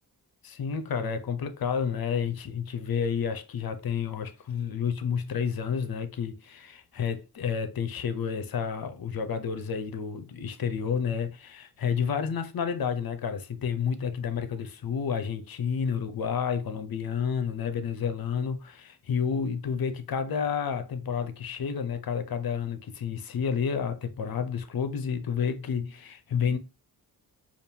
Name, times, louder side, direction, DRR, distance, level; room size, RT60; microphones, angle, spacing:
voice 1, 0.4-26.6, left 7 dB, 60° left, 0.8 m, -30 dB
5.1 x 2.5 x 2.8 m
supercardioid pair, 45°, 40 cm